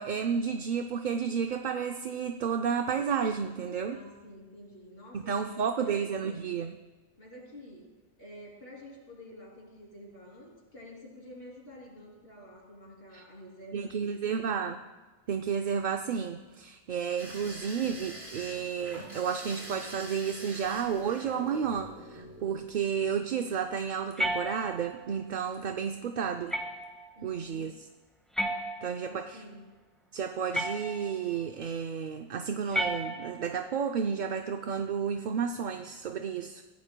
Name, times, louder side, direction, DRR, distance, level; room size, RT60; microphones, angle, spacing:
voice 1, 0.0-4.0 5.1-6.7 13.1-13.2 13.7-14.8 15.3-26.6 27.2-27.7 28.8-29.4 30.1-36.6, right 7 dB, 55° right, 5 dB, 0.7 m, -32 dB
voice 2, 3.8-6.7 7.2-14.5 27.1-27.7 29.0-29.7, left 1 dB, 65° left, -3 dB, 3.3 m, -49 dB
sound 1, 17.2-23.2 24.4-24.8 25.0-25.1, right 1 dB, 75° right, 4.1 m, -45 dB
sound 2, 24.2-25.1 26.5-27.1 28.4-29.2 30.5-31.3 32.7-33.6, right 1 dB, ahead, 1.5 m, -33 dB
23.5 x 15.0 x 2.2 m, 1.2 s
omnidirectional pair, 1.1 m